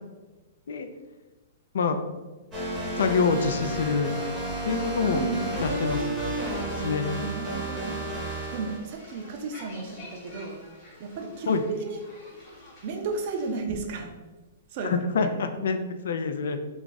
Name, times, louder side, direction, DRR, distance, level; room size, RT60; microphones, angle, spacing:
sound 1, 2.5-8.8, right 1 dB, 10° right, 0.7 m, -31 dB
voice 1, 3.0-4.1 4.6-5.2 5.6-6.1 6.8-7.1 11.5-11.6 14.8-16.6, left 5 dB, 70° left, 8 dB, 0.4 m, -26 dB
sound 2, 3.2-13.6, left 1 dB, 25° left, 1.1 m, -50 dB
voice 2, 5.0-5.6 7.0-8.0 8.5-10.6 11.0-12.0 12.8-14.1 14.7-15.3, right 4 dB, 35° right, 2 dB, 0.4 m, -33 dB
3.4 x 2.4 x 3.9 m, 1.2 s
hypercardioid pair, 180°, 0 cm